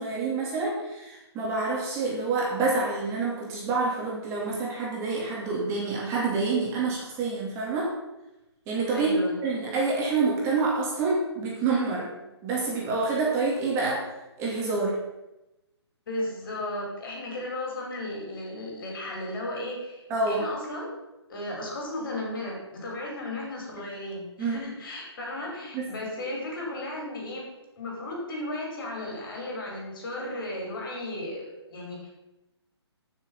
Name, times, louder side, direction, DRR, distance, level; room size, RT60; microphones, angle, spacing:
voice 1, 0.0-7.9 8.7-12.1 12.4-14.0 14.4-15.0 20.1-20.4 23.8-23.9 24.4-24.6 25.7-25.9, right 3 dB, 20° right, -4 dB, 3.0 m, -27 dB
voice 2, 8.9-9.3 16.1-20.9 21.3-27.5 27.8-32.1, left 1 dB, 50° left, -1 dB, 5.2 m, -35 dB
15.0 x 6.9 x 5.6 m, 0.96 s
hypercardioid pair, 150°, 14 cm